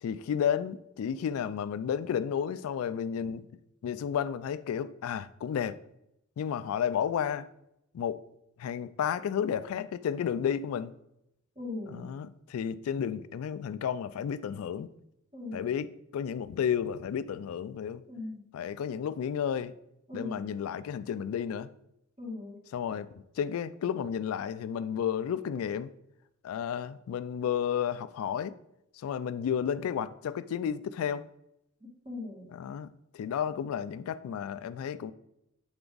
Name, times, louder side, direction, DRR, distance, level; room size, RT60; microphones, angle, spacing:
voice 1, 0.0-3.5 3.8-5.8 6.4-7.5 7.9-8.2 8.6-10.9 11.9-14.9 15.5-18.0 18.5-19.7 20.1-21.7 22.7-25.9 26.4-28.6 28.9-31.3 32.5-35.1, left 8 dB, 90° left, 0.3 m, -32 dB
voice 2, 11.6-12.1 15.3-15.7 18.1-18.5 20.1-20.5 22.2-22.6 32.1-32.5, left 2 dB, 30° right, 2.0 m, -39 dB
8.0 x 3.4 x 3.8 m
head